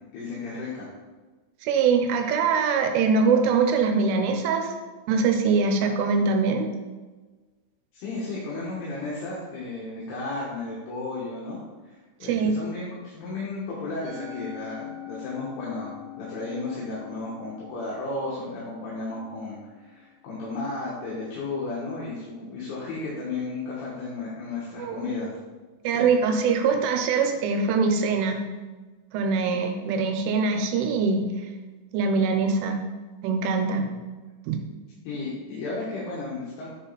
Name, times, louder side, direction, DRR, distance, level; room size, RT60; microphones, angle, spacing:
voice 1, 0.1-0.9 7.9-25.4 25.8-26.2 35.1-36.7, left 3 dB, 80° left, -8 dB, 3.9 m, -34 dB
voice 2, 1.6-4.7 5.1-6.7 12.2-12.5 24.8-25.0 25.8-28.4 29.1-31.3 31.9-32.8 33.2-34.0 34.5-34.6, right 5 dB, 85° right, 5 dB, 3.3 m, -23 dB
Musical instrument, 14.0-20.4, left 10 dB, 65° right, 3.7 m, -43 dB
10.0 x 4.2 x 4.1 m, 1.3 s
omnidirectional pair, 5.5 m